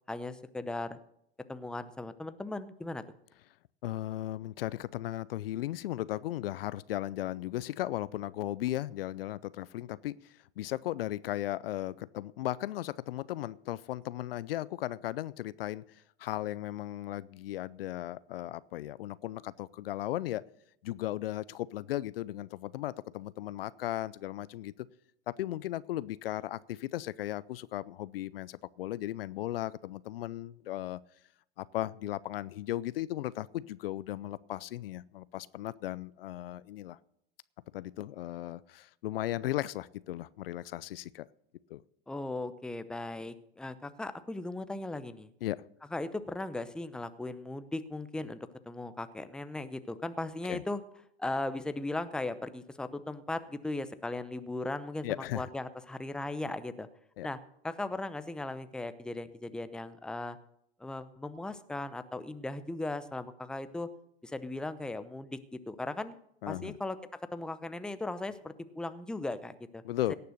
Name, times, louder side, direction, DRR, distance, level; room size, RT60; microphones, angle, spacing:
voice 1, 0.1-1.0 1.5-3.0 42.1-45.3 45.9-50.8 51.2-56.9 57.2-57.4 57.6-60.4 60.8-63.9 64.2-66.1 66.5-67.0 67.3-69.8, left 2 dB, 5° left, 12 dB, 0.6 m, -37 dB
voice 2, 3.8-20.5 20.8-24.7 25.3-31.0 31.6-37.0 37.7-41.3 41.7-41.8 45.4-45.6 50.5-50.6 55.0-55.5 57.2-57.3 66.4-66.8 69.8-70.1, left 14 dB, 70° left, 19 dB, 0.5 m, -36 dB
17.5 x 6.7 x 6.6 m, 0.75 s
hypercardioid pair, 100°, 30 cm